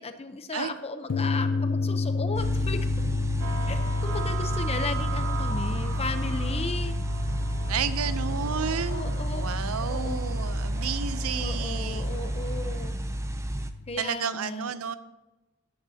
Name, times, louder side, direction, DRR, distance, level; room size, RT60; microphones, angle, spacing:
voice 1, 0.0-2.8 3.7-6.9 8.9-9.4 9.8-10.2 11.4-12.9 13.9-14.7, left 3 dB, 30° left, 8 dB, 0.8 m, -35 dB
sound 1, 1.1-14.0, left 4 dB, 65° left, 0.5 m, -32 dB
sound 2, 2.3-13.7, right 1 dB, 15° right, 0.5 m, -31 dB
sound 3, 3.4-12.9, right 5 dB, 65° right, 0.9 m, -40 dB
voice 2, 7.7-12.2 14.0-15.0, right 7 dB, 90° right, 13 dB, 0.6 m, -32 dB
13.5 x 10.5 x 2.8 m, 1.0 s
head